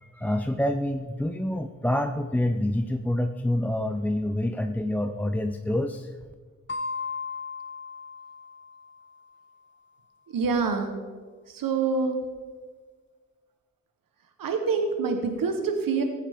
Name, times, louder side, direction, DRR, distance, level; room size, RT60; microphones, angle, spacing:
voice 1, 0.0-6.1, left 1 dB, 5° left, 6 dB, 0.5 m, -27 dB
sound 1, 6.7-9.2, left 4 dB, 35° left, 0.9 m, -36 dB
voice 2, 10.3-10.9 11.5-12.2 14.4-16.0, right 4 dB, 85° right, 5 dB, 1.1 m, -26 dB
15.0 x 8.7 x 3.6 m, 1.5 s
cardioid pair, 70°, 33 cm